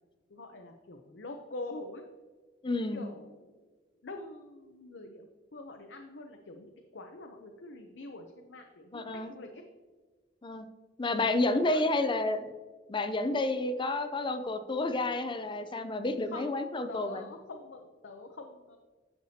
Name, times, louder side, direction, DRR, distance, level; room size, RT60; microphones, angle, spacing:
voice 1, 0.3-2.0 2.9-5.3 5.5-9.6 11.2-11.9 16.3-16.5 16.9-18.8, left 2 dB, 75° left, 3 dB, 0.7 m, -45 dB
voice 2, 2.6-3.0 8.9-9.3 10.4-10.6 11.0-12.5 12.9-17.2, left 2 dB, 30° left, 9 dB, 0.5 m, -30 dB
10.5 x 6.7 x 2.8 m, 1.3 s
head